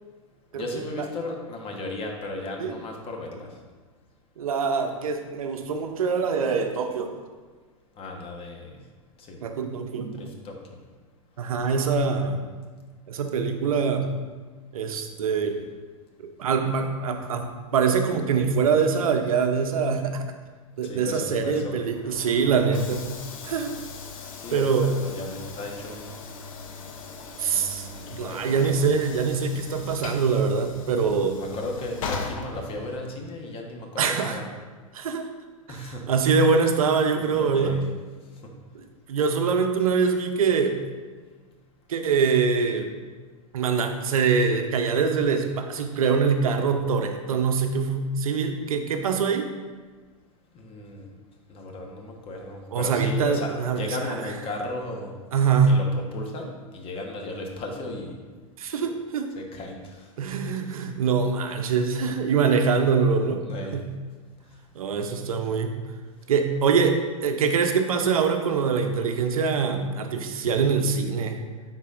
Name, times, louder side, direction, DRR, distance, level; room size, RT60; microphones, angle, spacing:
voice 1, 0.5-3.5 8.0-8.7 9.2-9.4 10.2-10.8 20.8-21.8 24.4-26.2 27.4-28.8 31.3-34.4 35.7-36.0 37.2-37.8 38.4-38.5 50.5-51.1 51.5-55.1 55.7-58.1 59.3-60.1 63.4-63.7, left 2 dB, 30° left, 2 dB, 1.2 m, -35 dB
voice 2, 4.4-7.2 9.4-10.1 11.4-12.4 13.1-14.1 14.7-15.6 16.4-20.2 20.8-23.1 23.4-23.7 24.5-24.9 27.4-31.4 34.0-34.4 34.9-35.3 36.1-37.8 39.1-40.8 41.9-42.9 43.5-49.5 52.7-53.8 55.3-55.8 58.6-59.3 60.2-63.4 63.7-63.9 64.8-65.8 66.3-71.4, right 5 dB, 75° right, 6 dB, 0.7 m, -24 dB
Train / Sliding door, 21.8-33.2, left 4 dB, 70° left, 0.8 m, -39 dB
9.6 x 4.1 x 2.5 m, 1.4 s
hypercardioid pair, 105°, 18 cm